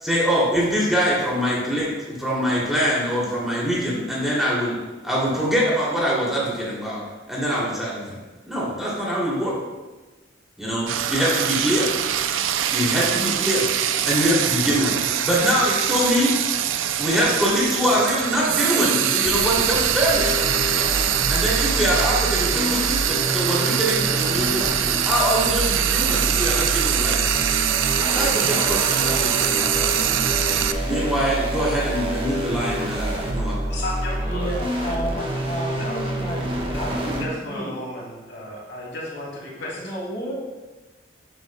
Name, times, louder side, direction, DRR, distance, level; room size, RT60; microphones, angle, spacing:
voice 1, 0.0-4.8 5.0-8.2 8.5-9.6 10.6-11.9 12.7-13.7 14.0-16.3 17.0-20.3 21.3-27.3 28.1-30.2 30.8-33.6, equal, ahead, -7 dB, 2.6 m, -24 dB
Frying (food), 10.9-30.7, right 10 dB, 90° right, 0.4 m, -23 dB
sound 1, 19.3-37.2, right 1 dB, 30° right, 1.1 m, -27 dB
sound 2, 26.0-30.6, right 2 dB, 45° right, 2.5 m, -41 dB
voice 2, 33.7-36.3 36.7-39.7, left 1 dB, 70° left, -3 dB, 2.5 m, -34 dB
voice 3, 34.2-36.4 36.7-37.8 39.8-40.3, equal, 25° left, -6 dB, 2.1 m, -31 dB
12.0 x 7.5 x 2.2 m, 1.2 s
head